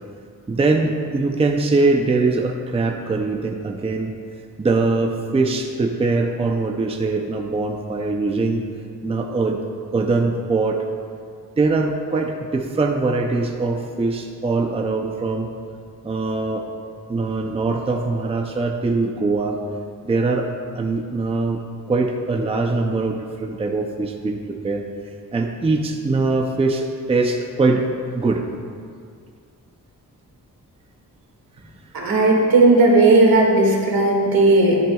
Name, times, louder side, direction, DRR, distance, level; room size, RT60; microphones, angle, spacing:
voice 1, 0.5-4.1 4.6-8.6 9.0-9.6 9.9-10.8 11.6-15.5 16.0-16.7 17.1-19.6 20.0-20.5 20.7-21.6 21.9-24.8 25.3-27.8 28.1-28.4, right 3 dB, 15° right, 3 dB, 0.5 m, -22 dB
voice 2, 31.9-34.8, right 2 dB, 85° right, -2 dB, 2.1 m, -15 dB
13.0 x 10.5 x 2.3 m, 2.2 s
wide cardioid pair, 160°, 35 cm